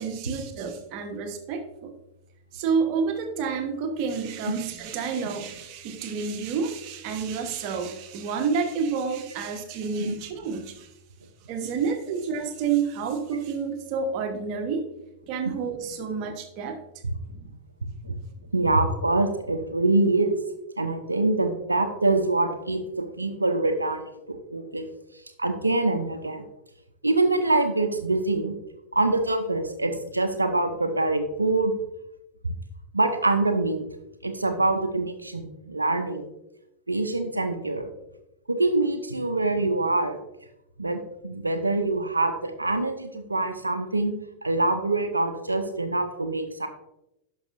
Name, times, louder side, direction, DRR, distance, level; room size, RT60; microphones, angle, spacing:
voice 1, 0.0-1.9 2.5-10.9 11.5-14.9 15.3-16.8 17.3-17.5 18.0-18.2, right 5 dB, 45° right, 6 dB, 1.1 m, -29 dB
voice 2, 18.5-20.4 20.8-22.9 23.2-24.9 25.4-26.4 27.0-28.5 28.9-31.7 32.9-33.8 34.2-36.3 36.9-37.9 38.5-40.2 40.8-44.1 44.4-46.7, right 2 dB, 80° right, 6 dB, 0.6 m, -25 dB
11.0 x 5.6 x 2.6 m, 0.89 s
figure-of-eight pair, 90°, 0 cm